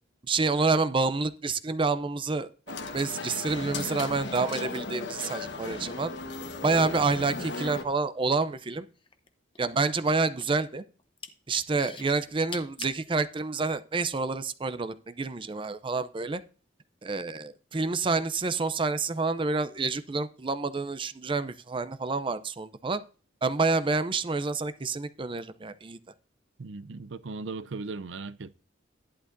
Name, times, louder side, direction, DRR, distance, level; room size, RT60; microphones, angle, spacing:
voice 1, 0.2-6.1 6.6-8.9 9.6-10.8 11.5-16.4 17.0-23.0 23.4-26.0, right 3 dB, 30° right, 0.5 m, -28 dB
sound 1, 2.7-7.8, left 3 dB, 70° left, 1.3 m, -36 dB
sound 2, 8.1-9.3 9.6-10.6 11.0-11.3 11.8-13.0 13.7-13.8, left 6 dB, 30° left, 0.8 m, -42 dB
voice 2, 26.6-28.6, right 3 dB, 85° right, 0.6 m, -38 dB
11.0 x 11.0 x 2.6 m
head